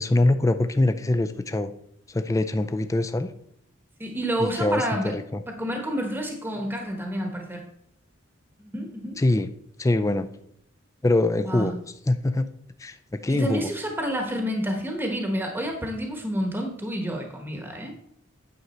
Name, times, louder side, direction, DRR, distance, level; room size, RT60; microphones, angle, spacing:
voice 1, 0.0-1.7 2.1-3.3 4.4-5.4 9.2-9.5 9.8-10.3 11.0-11.7 12.1-12.5 12.8-13.7, left 2 dB, 15° left, 10 dB, 0.4 m, -23 dB
voice 2, 4.0-5.2 5.5-7.7 8.6-9.2 11.5-11.7 13.3-18.0, equal, 10° right, 3 dB, 1.1 m, -29 dB
9.5 x 6.2 x 4.2 m, 0.71 s
head